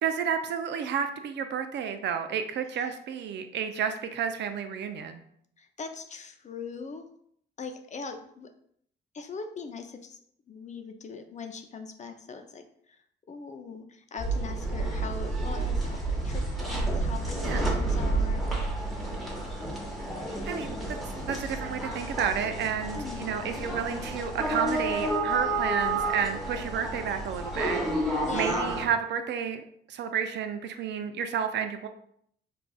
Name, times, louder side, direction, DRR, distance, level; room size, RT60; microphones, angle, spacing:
voice 1, 0.0-5.2 17.4-17.6 20.5-21.0 21.2-31.9, right 7 dB, 65° right, 7 dB, 0.4 m, -31 dB
voice 2, 5.6-7.1 7.6-8.5 9.1-10.2 10.5-13.0 13.3-18.4 22.9-23.4 28.2-28.7, left 5 dB, 35° left, 6 dB, 0.5 m, -41 dB
sound 1, 14.2-28.9, right 2 dB, ahead, 1.0 m, -30 dB
4.8 x 2.5 x 2.3 m, 0.67 s
cardioid pair, 90°, 20 cm